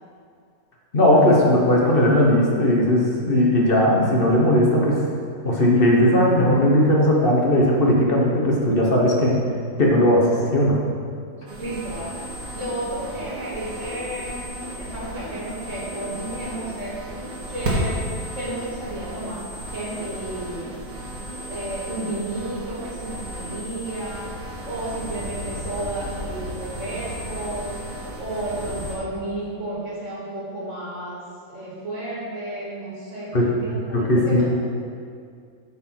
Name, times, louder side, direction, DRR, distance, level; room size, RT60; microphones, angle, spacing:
voice 1, 0.9-5.0 5.4-9.4 9.8-10.8 33.3-33.5 33.9-34.4, left 1 dB, 40° left, -2 dB, 1.4 m, -18 dB
sound 1, 11.5-28.9, equal, 70° right, 2.1 m, -33 dB
voice 2, 11.6-12.1 12.5-17.0 17.5-19.4 19.7-20.7 21.5-24.3 24.7-27.7 28.2-31.2 31.5-33.3 33.6-34.4, right 1 dB, 55° right, -7 dB, 2.5 m, -32 dB
9.3 x 4.9 x 5.8 m, 2.2 s
omnidirectional pair, 1.5 m